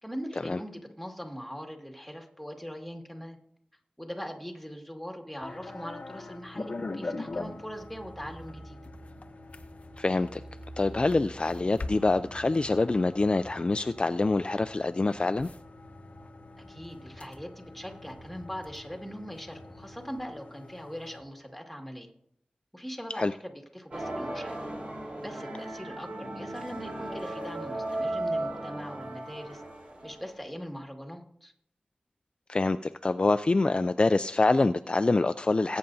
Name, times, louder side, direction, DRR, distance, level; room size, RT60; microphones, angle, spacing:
voice 1, 0.0-3.4 4.0-8.8 16.6-22.1 22.7-24.6 25.2-29.6 30.0-31.5, equal, ahead, 2 dB, 2.0 m, -41 dB
sound 1, 5.4-21.2, left 2 dB, 55° left, 0.8 m, -43 dB
sound 2, 7.3-19.9, right 1 dB, 35° right, 4.6 m, -50 dB
voice 2, 10.0-10.4 10.8-15.5 23.2-23.3 32.5-35.8, left 3 dB, 35° left, 11 dB, 0.3 m, -25 dB
sound 3, 23.9-30.5, right 1 dB, 50° right, 4.3 m, -36 dB
19.5 x 8.9 x 2.7 m, 0.71 s
wide cardioid pair, 65°, 3 cm